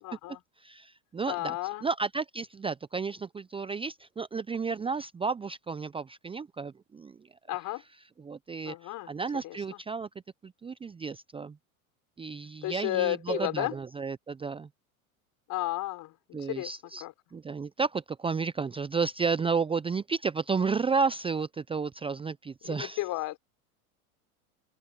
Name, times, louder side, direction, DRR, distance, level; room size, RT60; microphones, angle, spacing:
voice 1, 0.0-0.4 1.3-1.8 7.5-7.8 8.6-9.1 9.4-9.5 12.6-13.7 15.5-16.1 16.5-16.7 17.0-17.1 22.7-23.4, left 17 dB, 45° left, 4.5 m, -32 dB
voice 2, 0.6-7.2 8.2-10.1 10.4-11.6 12.2-14.7 16.3-17.1 17.3-23.0, right 5 dB, 10° right, 0.7 m, -32 dB
open air
hypercardioid pair, 95°, 43 cm